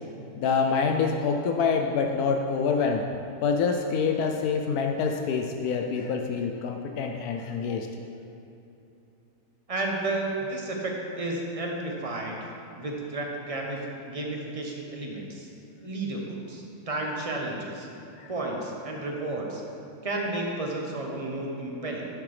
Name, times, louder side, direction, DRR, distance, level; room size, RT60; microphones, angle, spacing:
voice 1, 0.3-3.1 3.4-7.9 18.2-18.3, left 5 dB, 80° left, 3 dB, 1.1 m, -26 dB
voice 2, 9.7-12.4 12.7-15.5 15.8-17.9 18.3-19.6 20.0-22.1, right 2 dB, 25° right, -1 dB, 0.9 m, -32 dB
11.0 x 6.8 x 3.3 m, 2.8 s
omnidirectional pair, 1.6 m